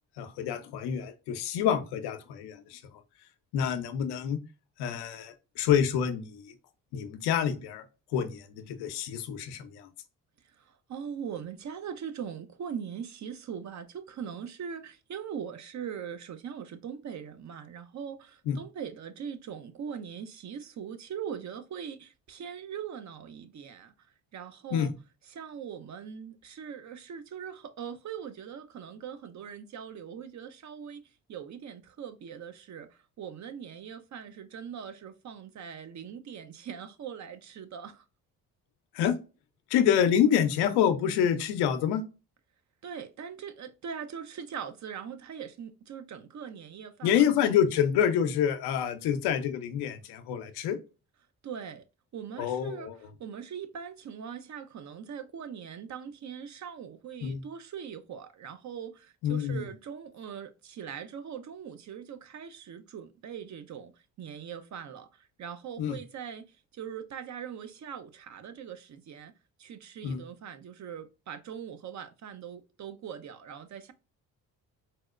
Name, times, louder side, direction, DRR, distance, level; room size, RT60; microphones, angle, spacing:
voice 1, 0.2-2.8 3.5-4.4 4.8-6.5 6.9-7.8 8.1-9.9 18.5-18.6 24.7-24.9 38.9-39.2 39.7-42.0 47.0-50.8 52.4-52.9 57.2-57.4 59.2-59.6 65.8-66.0 70.0-70.2, left 9 dB, 80° left, 0.6 m, -27 dB
voice 2, 10.4-24.9 25.2-38.1 42.8-47.3 51.4-51.8 52.1-69.3 69.6-73.9, right 7 dB, 50° right, 0.6 m, -41 dB
4.2 x 2.1 x 2.4 m
supercardioid pair, 70°, 38 cm